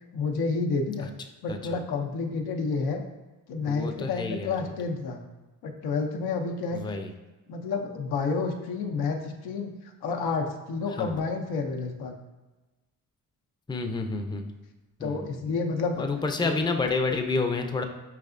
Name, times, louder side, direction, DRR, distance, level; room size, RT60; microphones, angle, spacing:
voice 1, 0.1-1.1 1.4-3.0 3.5-5.2 5.6-7.0 7.5-12.1 15.0-16.0 16.4-16.7, left 4 dB, 90° left, 3 dB, 0.6 m, -30 dB
voice 2, 1.5-1.8 3.7-4.7 6.7-7.1 10.9-11.2 13.7-14.5 15.0-15.4 16.0-17.8, left 3 dB, 10° left, 5 dB, 0.4 m, -29 dB
4.7 x 3.2 x 2.5 m, 1.2 s
cardioid pair, 50°, 38 cm